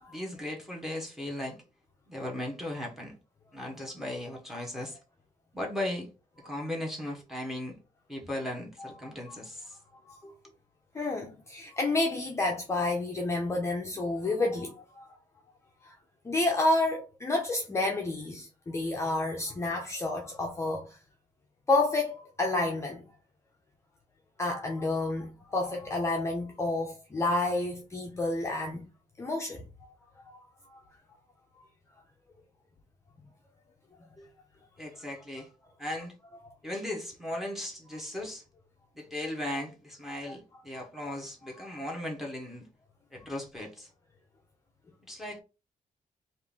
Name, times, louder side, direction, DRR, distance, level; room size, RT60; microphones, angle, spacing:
voice 1, 0.1-1.6 2.1-3.2 3.5-5.0 5.5-6.1 6.4-7.8 8.1-9.8 10.2-10.3 34.2-34.3 34.8-35.5 35.8-36.1 36.6-38.4 38.9-42.7 43.1-43.9 45.1-45.4, left 1 dB, ahead, 0.9 m, -37 dB
voice 2, 10.9-15.1 15.8-15.9 16.2-21.0 21.7-23.0 24.4-28.9 29.2-29.6 30.3-30.4 30.7-30.8 40.3-40.4 40.8-40.9, left 2 dB, 20° left, 0.5 m, -30 dB
3.6 x 2.5 x 3.5 m
wide cardioid pair, 175°, 14 cm